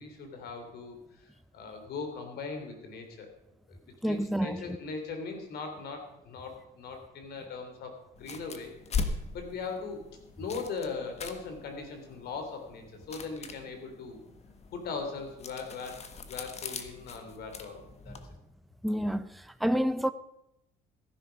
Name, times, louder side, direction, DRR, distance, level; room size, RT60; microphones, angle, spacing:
voice 1, 0.0-3.3 3.7-3.8 4.1-10.0 10.4-14.2 14.7-16.0 16.3-18.2, left 4 dB, 70° left, 3.4 m, -40 dB
voice 2, 4.0-4.8 18.1-18.2 18.8-20.1, equal, ahead, 0.6 m, -29 dB
sound 1, 8.2-18.3, left 5 dB, 40° left, 1.5 m, -41 dB
16.0 x 10.5 x 5.3 m
cardioid pair, 110°, 17 cm